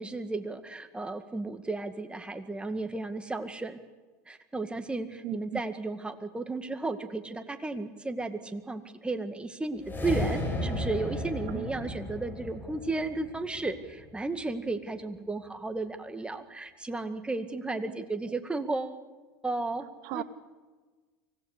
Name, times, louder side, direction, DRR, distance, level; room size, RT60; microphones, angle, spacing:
voice 1, 0.0-3.8 4.3-19.0 19.4-19.9 20.1-20.2, right 3 dB, 10° right, 8 dB, 2.0 m, -34 dB
voice 2, 5.2-5.6 11.5-11.7 20.0-20.2, right 15 dB, 60° right, 12 dB, 1.0 m, -35 dB
sound 1, 9.8-14.2, left 1 dB, 20° left, 6.4 m, -34 dB
24.5 x 18.0 x 8.4 m, 1.3 s
hypercardioid pair, 90°, 9 cm